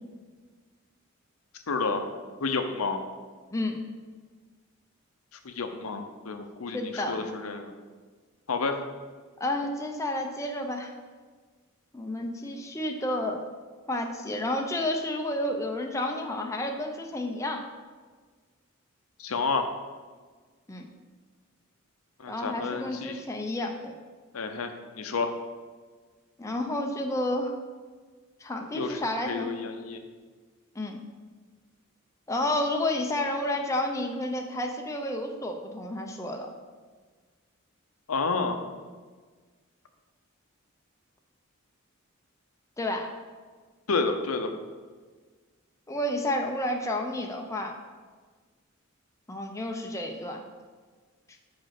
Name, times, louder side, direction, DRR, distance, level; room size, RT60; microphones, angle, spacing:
voice 1, 1.7-2.1 2.4-3.0 5.4-7.7 8.5-8.8 19.2-19.7 22.2-23.2 24.3-25.3 28.7-29.0 29.3-30.0 38.1-38.6 43.9-44.5, left 4 dB, 85° left, 6 dB, 0.8 m, -30 dB
voice 2, 3.5-3.8 6.7-7.2 9.4-10.9 11.9-13.4 13.9-17.6 20.7-20.9 22.3-23.9 26.4-27.5 28.4-29.5 30.8-31.0 32.3-36.5 42.8-43.1 45.9-47.7 49.3-50.4, left 1 dB, 15° left, 2 dB, 0.6 m, -30 dB
5.9 x 5.2 x 5.9 m, 1.4 s
head